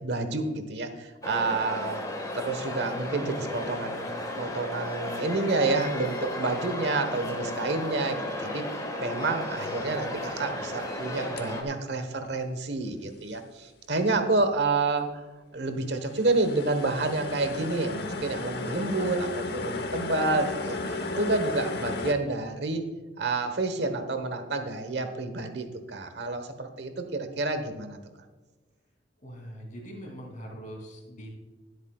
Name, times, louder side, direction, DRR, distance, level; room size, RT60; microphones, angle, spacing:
voice 1, 0.0-2.0 2.3-8.6 9.0-15.2 15.5-22.8 23.2-28.0, right 3 dB, 65° right, 7 dB, 1.2 m, -29 dB
sound 1, 1.2-11.6, left 1 dB, 20° left, 1.6 m, -34 dB
sound 2, 11.2-11.4 15.9-22.1, left 2 dB, 60° left, 1.1 m, -34 dB
voice 2, 29.2-31.4, equal, 45° left, 0 dB, 2.9 m, -42 dB
21.0 x 8.2 x 2.4 m, 1.3 s
head